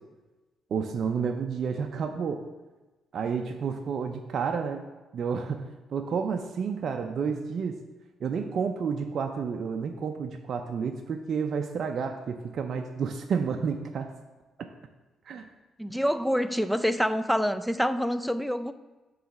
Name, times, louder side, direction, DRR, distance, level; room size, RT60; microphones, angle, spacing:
voice 1, 0.7-2.5 3.1-4.9 5.1-7.8 8.2-14.1 14.6-14.7 15.3-15.5, right 6 dB, 60° right, 5 dB, 0.4 m, -30 dB
voice 2, 15.8-18.7, equal, ahead, 10 dB, 0.4 m, -26 dB
7.5 x 3.2 x 5.9 m, 1.2 s
cardioid pair, 90°, 0 cm